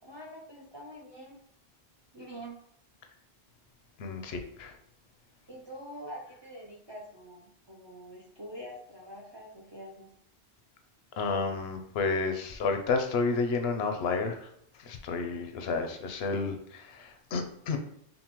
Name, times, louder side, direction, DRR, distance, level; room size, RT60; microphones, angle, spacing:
voice 1, 0.0-1.4 2.1-2.6 5.5-10.1, equal, 35° right, -2 dB, 0.4 m, -45 dB
voice 2, 4.0-4.8 11.2-14.5 14.8-17.8, left 4 dB, 80° left, 6 dB, 0.8 m, -31 dB
5.2 x 2.2 x 2.9 m, 0.71 s
omnidirectional pair, 1.0 m